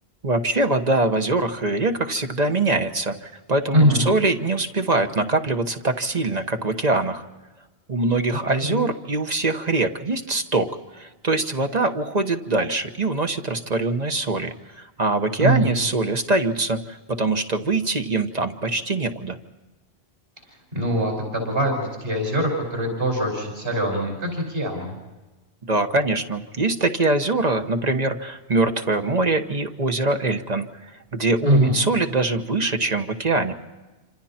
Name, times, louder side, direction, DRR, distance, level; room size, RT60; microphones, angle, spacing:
voice 1, 0.2-7.2 7.9-10.7 10.9-19.4 25.7-30.6 31.1-33.5, right 2 dB, 40° right, 6 dB, 1.3 m, -23 dB
voice 2, 3.7-4.0 8.6-8.9 15.4-15.7 20.7-25.0 31.4-31.8, right 1 dB, 60° right, 1 dB, 5.8 m, -22 dB
28.0 x 26.5 x 4.4 m, 1.2 s
omnidirectional pair, 1.1 m